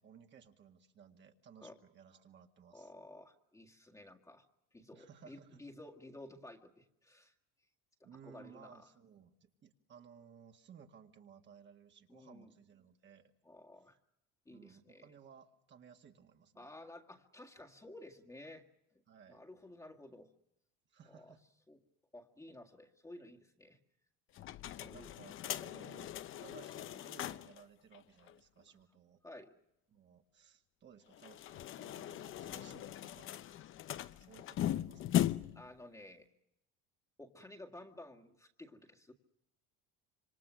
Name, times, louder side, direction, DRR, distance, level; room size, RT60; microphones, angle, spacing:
voice 1, 0.0-2.9 4.9-5.6 8.0-13.3 14.5-16.7 19.1-19.4 20.9-21.4 24.8-29.2 29.9-33.3 34.1-35.2, right 7 dB, 40° right, 4 dB, 2.0 m, -59 dB
voice 2, 2.7-4.5 4.7-7.3 8.2-8.9 12.1-12.5 13.4-14.0 14.5-15.1 16.6-18.6 19.3-20.3 21.1-21.3 21.7-21.8 22.1-23.8 24.7-25.1 25.6-25.7 29.2-29.6 35.5-36.3 37.2-39.1, left 1 dB, 10° left, 1 dB, 1.9 m, -53 dB
sound 1, 24.4-27.6 27.9-28.0 28.3-28.4 31.1-35.7, left 12 dB, 45° left, 0.8 m, -39 dB
27.0 x 25.5 x 6.2 m, 0.84 s
cardioid pair, 130°, 30 cm